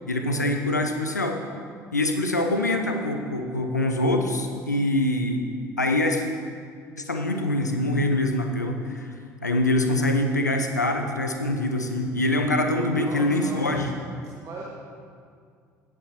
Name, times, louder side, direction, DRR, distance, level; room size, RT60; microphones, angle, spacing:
voice 1, 0.1-1.4 1.9-5.4 5.8-6.2 7.0-9.1 9.4-13.9, left 1 dB, 85° left, 4 dB, 0.8 m, -24 dB
voice 2, 12.9-14.0 14.4-14.6, right 3 dB, 35° right, -3 dB, 1.5 m, -38 dB
17.0 x 8.4 x 3.1 m, 2.2 s
figure-of-eight pair, 60°, 9 cm